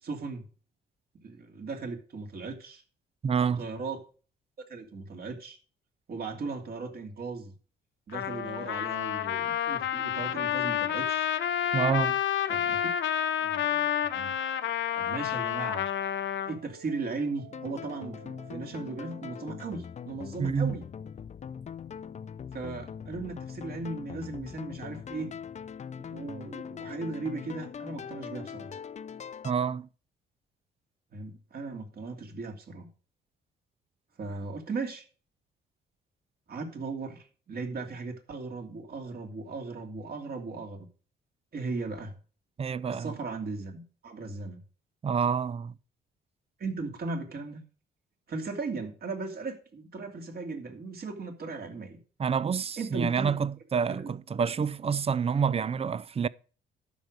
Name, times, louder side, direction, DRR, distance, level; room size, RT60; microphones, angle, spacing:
voice 1, 0.0-0.5 1.2-2.8 3.6-4.0 4.7-5.6 6.1-7.5 8.1-11.3 12.5-12.8 13.4-14.3 15.0-15.9 16.4-20.8 22.5-25.3 26.1-28.7 31.1-32.9 34.2-35.0 36.5-40.9 41.5-42.1 42.9-44.6 46.6-47.7 48.3-52.0 52.8-53.4 53.9-54.1, right 3 dB, 50° right, 2.7 m, -37 dB
voice 2, 3.2-3.7 11.7-12.2 20.4-20.7 29.4-29.9 42.6-43.1 45.0-45.7 52.2-56.3, right 6 dB, 30° right, 0.5 m, -28 dB
Trumpet, 8.1-16.5, left 10 dB, 75° left, 0.8 m, -29 dB
sound 1, 11.2-19.8, right 8 dB, 80° right, 1.6 m, -54 dB
sound 2, 17.5-29.5, left 7 dB, 35° left, 0.5 m, -41 dB
12.0 x 5.2 x 6.2 m
cardioid pair, 90°, 20 cm